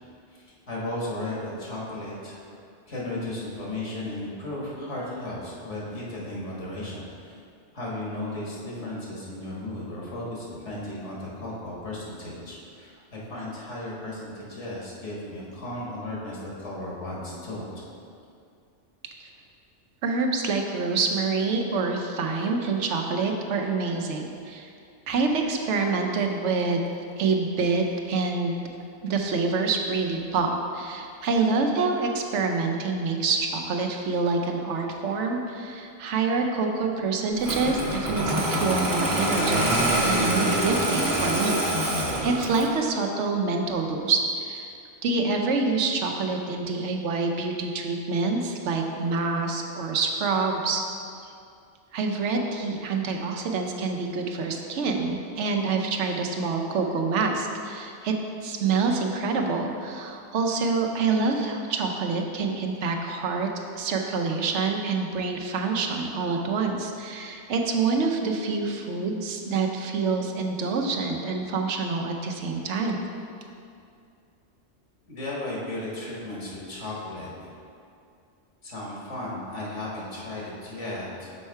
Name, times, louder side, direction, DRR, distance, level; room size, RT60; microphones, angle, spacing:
voice 1, 0.3-2.5 2.9-7.3 7.7-17.8 75.1-77.3 78.6-81.3, left 1 dB, 80° left, -5 dB, 1.8 m, -35 dB
voice 2, 20.0-24.7 25.1-26.8 27.2-28.6 29.0-44.7 45.0-50.8 51.9-58.1 58.4-63.5 63.7-73.0, right 4 dB, 80° right, 3 dB, 1.0 m, -26 dB
Engine starting, 37.4-42.8, right 1 dB, 20° right, 0.7 m, -25 dB
6.4 x 4.3 x 4.6 m, 2.4 s
omnidirectional pair, 1.2 m